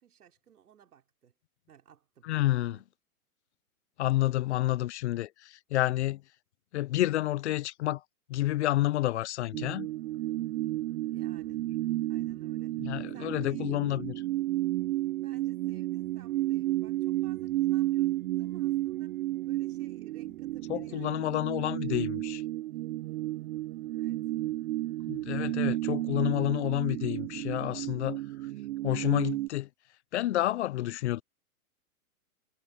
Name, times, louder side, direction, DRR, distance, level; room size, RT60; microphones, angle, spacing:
voice 1, 0.0-1.3 1.7-2.8 11.1-11.6 12.1-12.7 13.1-14.1 15.2-19.2 19.4-21.8 23.9-24.2, right 9 dB, 90° right, 5.0 m, -57 dB
voice 2, 2.3-2.8 4.0-6.2 6.7-8.0 8.3-9.9 12.8-14.1 20.7-22.4 25.1-28.2 28.8-29.7 30.1-31.2, left 15 dB, 50° left, 0.5 m, -29 dB
sound 1, 9.5-29.5, right 16 dB, 70° right, 0.5 m, -32 dB
hypercardioid pair, 155°, 44 cm